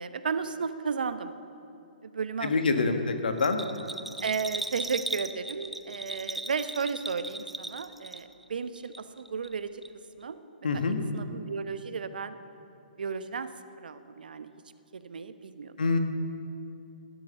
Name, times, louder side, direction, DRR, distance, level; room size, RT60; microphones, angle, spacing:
voice 1, 0.0-1.3 2.1-2.9 4.2-9.7 10.2-10.4 11.1-12.4 13.0-13.5 13.8-14.5 14.9-15.7, right 5 dB, 70° right, 12 dB, 0.9 m, -34 dB
voice 2, 2.4-3.6 10.6-11.0 15.8-16.0, left 4 dB, 75° left, 6 dB, 1.6 m, -26 dB
Bell, 3.4-8.5 8.8-9.5 9.8-9.9, right 2 dB, 5° right, 0.4 m, -38 dB
16.0 x 12.5 x 6.8 m, 2.7 s
figure-of-eight pair, 130°, 5 cm